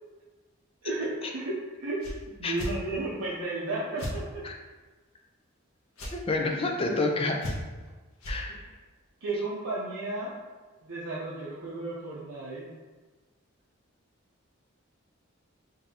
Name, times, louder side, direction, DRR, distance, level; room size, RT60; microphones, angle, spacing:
voice 1, 0.8-2.1 2.4-4.2 6.5-6.7 8.5-8.6 9.2-10.3 10.8-12.7, right 2 dB, 80° right, -7 dB, 0.7 m, -33 dB
sound 1, 2.0-2.2 2.6-2.7 4.0-4.2 6.0-6.1 7.4-7.8 8.2-8.4, left 1 dB, 75° left, 1.0 m, -34 dB
voice 2, 6.1-7.5 8.3-8.5, left 2 dB, 25° left, 2 dB, 0.4 m, -28 dB
5.3 x 2.7 x 2.8 m, 1.3 s
head